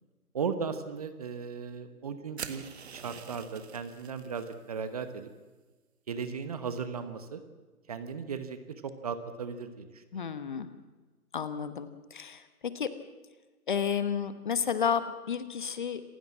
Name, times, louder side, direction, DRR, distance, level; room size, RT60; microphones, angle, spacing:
voice 1, 0.3-5.3 6.1-7.4 7.9-10.2, right 6 dB, 25° right, 10 dB, 1.1 m, -37 dB
sound 1, 2.4-4.6, right 6 dB, 45° right, 1.8 m, -44 dB
voice 2, 10.1-10.7 11.3-12.9 13.7-16.0, left 7 dB, 30° left, 12 dB, 1.1 m, -31 dB
27.0 x 16.0 x 7.4 m, 1.3 s
figure-of-eight pair, 155°, 45 cm